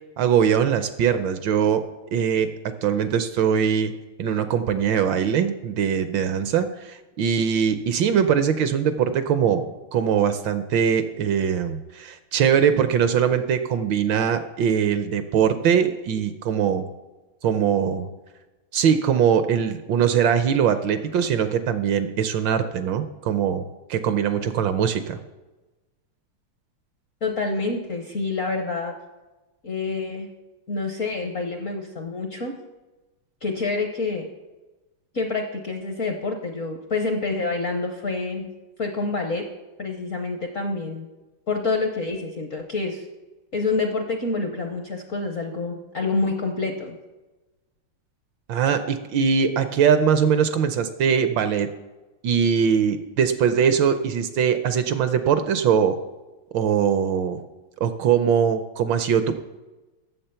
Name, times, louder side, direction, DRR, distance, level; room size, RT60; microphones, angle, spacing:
voice 1, 0.2-1.8 2.1-2.5 2.8-3.9 4.2-9.7 9.9-16.9 17.4-18.1 18.7-23.6 23.9-25.2 48.5-51.7 52.2-55.9 56.5-57.4 57.8-59.4, right 7 dB, 75° right, 10 dB, 1.2 m, -21 dB
voice 2, 27.2-29.0 29.6-30.3 30.7-32.6 33.4-34.3 35.1-38.5 38.8-39.5 39.8-41.1 41.5-43.1 43.5-47.0, left 3 dB, 60° left, 4 dB, 0.9 m, -27 dB
8.8 x 7.3 x 6.8 m, 1.1 s
omnidirectional pair, 2.3 m